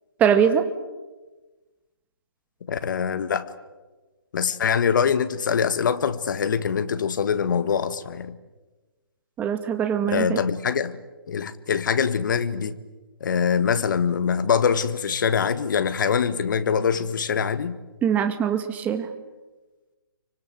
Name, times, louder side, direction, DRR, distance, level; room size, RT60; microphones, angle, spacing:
voice 1, 0.2-0.7 9.4-10.4 18.0-19.1, right 8 dB, 15° right, 8 dB, 1.7 m, -22 dB
voice 2, 2.7-3.5 4.3-8.4 10.1-11.0 11.3-12.8 13.2-17.8, left 7 dB, 55° left, 12 dB, 1.8 m, -23 dB
29.5 x 25.0 x 7.8 m, 1.2 s
hypercardioid pair, 155°, 12 cm